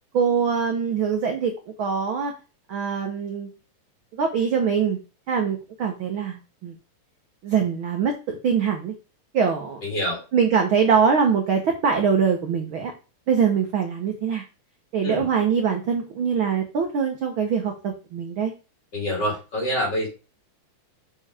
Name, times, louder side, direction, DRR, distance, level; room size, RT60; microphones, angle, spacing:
voice 1, 0.1-1.5 1.8-2.3 2.7-3.5 4.2-5.0 5.3-6.8 7.4-8.9 9.3-9.8 10.3-12.9 13.3-14.4 14.9-18.5, right 6 dB, 60° right, 3 dB, 1.4 m, -23 dB
voice 2, 9.8-10.2 15.0-15.3 18.9-20.1, equal, 35° left, -1 dB, 3.9 m, -26 dB
7.0 x 5.7 x 4.9 m, 0.31 s
omnidirectional pair, 3.4 m